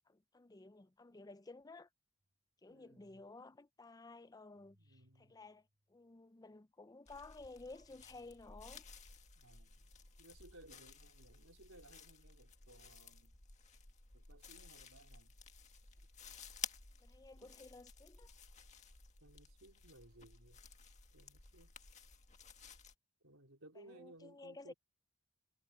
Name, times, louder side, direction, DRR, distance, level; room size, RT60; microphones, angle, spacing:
voice 1, 0.1-1.9 2.6-8.8 17.0-18.3 23.7-24.7, left 3 dB, 20° left, 0.5 m, -55 dB
sound 1, 2.2-2.4 4.6-6.2 7.8-9.2, equal, 45° right, 4.6 m, -76 dB
voice 2, 2.7-3.2 4.8-5.4 9.3-9.9 10.2-13.4 14.1-15.3 16.0-16.1 17.4-17.7 19.2-20.6 21.1-21.8 23.2-24.7, right 1 dB, 85° right, 4.3 m, -61 dB
sound 2, 7.1-22.9, left 6 dB, 35° left, 1.8 m, -54 dB
head